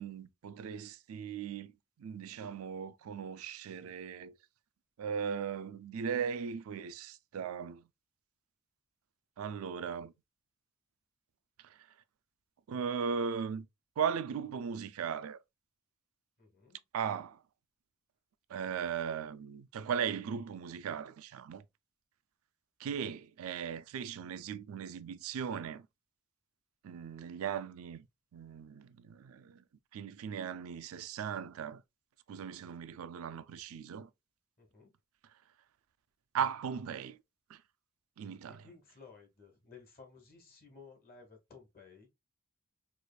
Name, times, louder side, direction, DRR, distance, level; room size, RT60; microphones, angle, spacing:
voice 1, 0.0-1.7 2.0-4.4 5.0-7.9 9.4-10.1 11.6-11.8 12.7-13.7 14.0-15.4 16.9-17.4 18.5-21.6 22.8-25.9 26.8-28.0 28.3-29.6 29.9-31.8 32.3-34.1 36.3-37.2 37.5-37.6 38.2-38.6, right 7 dB, 75° right, 0.3 m, -38 dB
voice 2, 16.4-16.8 34.6-34.9 38.5-42.1, left 5 dB, 45° left, 1.4 m, -56 dB
4.7 x 2.5 x 2.2 m
head